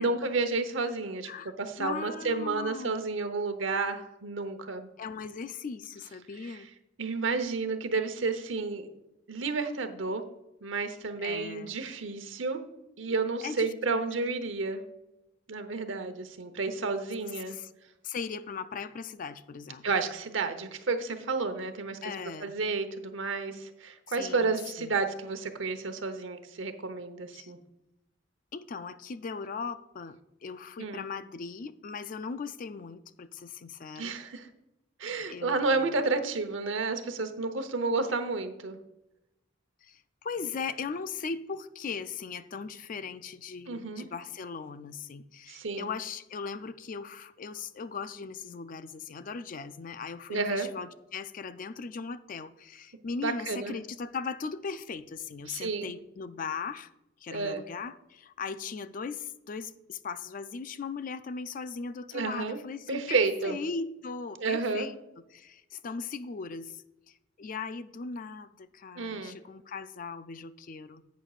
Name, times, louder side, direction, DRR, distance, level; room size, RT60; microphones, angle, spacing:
voice 1, 0.0-1.3 1.6-4.9 6.4-6.6 7.0-8.9 9.3-10.2 10.6-12.6 13.0-14.8 15.5-17.6 19.8-22.0 22.4-27.6 30.8-31.0 34.0-34.5 35.0-38.8 43.7-44.1 45.5-45.9 50.3-50.7 53.2-53.7 55.5-55.9 57.3-57.6 62.1-62.6 62.9-63.6 64.4-64.9 69.0-69.4, right 3 dB, 85° right, 8 dB, 0.9 m, -31 dB
voice 2, 1.8-3.0 5.0-6.7 11.2-11.8 13.4-14.0 17.3-17.7 18.0-19.9 22.0-22.5 24.1-24.9 27.3-27.5 28.5-34.2 35.3-36.0 39.8-56.9 57.2-65.0 65.3-66.8 67.4-71.0, left 5 dB, 45° left, 13 dB, 0.4 m, -38 dB
11.0 x 8.2 x 2.4 m, 0.93 s
head